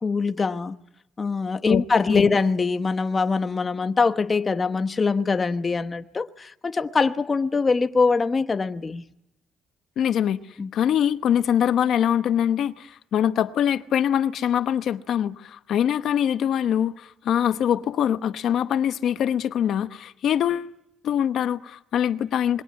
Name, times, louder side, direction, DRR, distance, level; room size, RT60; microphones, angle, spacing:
voice 1, 0.0-0.8 1.2-9.0 10.6-10.7, left 4 dB, 30° left, 1.0 m, -23 dB
voice 2, 1.7-2.3 10.0-20.7 21.0-22.6, left 9 dB, 70° left, 0.9 m, -23 dB
26.5 x 22.0 x 9.4 m
cardioid pair, 90°, 0 cm